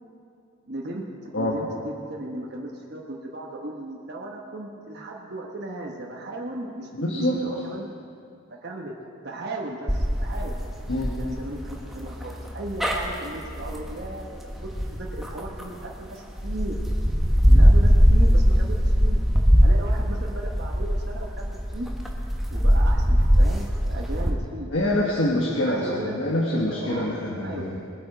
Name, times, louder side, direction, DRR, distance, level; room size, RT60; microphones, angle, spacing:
voice 1, 0.7-7.9 8.6-9.0 9.2-10.5 11.2-14.4 14.9-16.8 17.5-19.2 19.6-21.9 22.5-24.7 25.6-27.1 27.4-27.8, right 1 dB, 50° right, -2 dB, 1.1 m, -36 dB
voice 2, 6.9-7.4 10.9-11.2 24.7-27.8, left 1 dB, 60° left, -4 dB, 1.3 m, -25 dB
sound 1, 9.9-15.9 16.4-24.3, equal, ahead, 0.9 m, -20 dB
20.5 x 8.2 x 5.0 m, 2.5 s
head